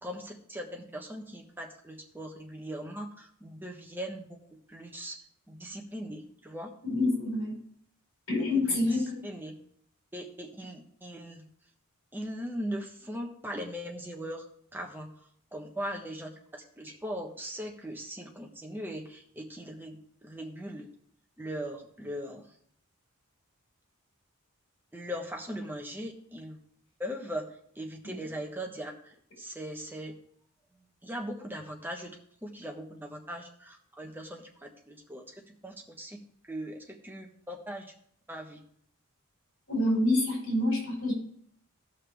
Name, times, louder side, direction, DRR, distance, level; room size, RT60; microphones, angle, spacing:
voice 1, 0.0-4.4 4.7-5.2 5.5-6.7 8.3-9.6 10.1-11.5 12.1-14.4 14.7-20.9 21.4-22.5 24.9-26.6 27.0-27.5 27.7-30.1 31.0-36.2 36.5-37.9 38.3-38.6, equal, 10° right, 1 dB, 1.3 m, -40 dB
voice 2, 6.8-7.6 8.3-9.3 28.0-28.2 39.7-41.1, left 2 dB, 60° left, -1 dB, 5.0 m, -27 dB
17.0 x 5.7 x 3.3 m, 0.65 s
head